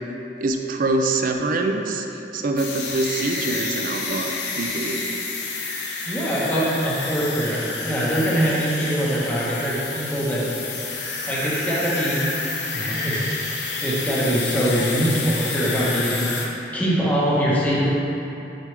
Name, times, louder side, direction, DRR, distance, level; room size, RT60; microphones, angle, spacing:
voice 1, 0.4-2.1 2.3-5.1, right 2 dB, 50° right, 4 dB, 0.4 m, -24 dB
sound 1, 2.6-16.5, left 3 dB, 70° left, 0.7 m, -29 dB
voice 2, 6.0-10.5 11.3-12.3 12.7-13.5 13.8-17.9, equal, 10° left, -8 dB, 1.1 m, -23 dB
6.3 x 5.2 x 3.4 m, 2.9 s
head